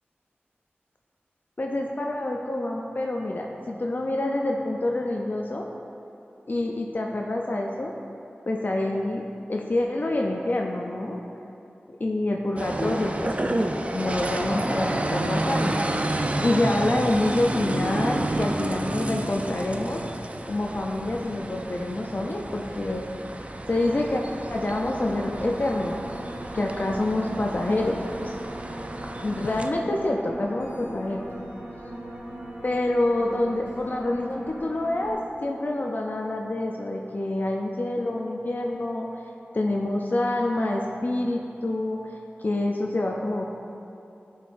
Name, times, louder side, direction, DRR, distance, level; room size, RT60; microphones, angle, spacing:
voice 1, 1.6-5.7 6.5-7.9 8.5-9.2 9.5-11.2 12.0-15.8 16.4-20.0 20.5-23.0 23.7-24.2 24.5-26.0 26.5-28.4 29.2-31.3 32.6-39.1 39.5-42.1 42.4-43.4, left 2 dB, 50° left, 0 dB, 0.4 m, -27 dB
sound 1, 12.6-29.7, right 1 dB, 35° right, 0.4 m, -30 dB
sound 2, 24.2-35.1, right 1 dB, 65° right, 1.2 m, -39 dB
9.2 x 5.6 x 2.5 m, 2.8 s
wide cardioid pair, 50°, 4 cm